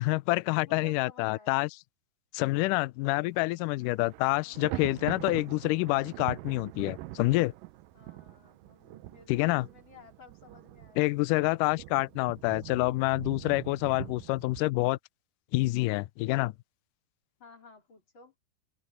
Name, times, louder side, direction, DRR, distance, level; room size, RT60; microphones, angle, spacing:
voice 1, 0.0-1.7 2.3-7.5 9.3-9.7 11.0-15.0 15.5-16.5, left 21 dB, 85° left, 1.9 m, -27 dB
voice 2, 0.7-1.6 4.4-4.7 7.9-11.1 17.4-18.3, left 3 dB, 35° left, 3.8 m, -54 dB
Thunder, 3.2-3.5 3.8-14.6, right 17 dB, 80° right, 2.1 m, -43 dB
omnidirectional pair, 4.3 m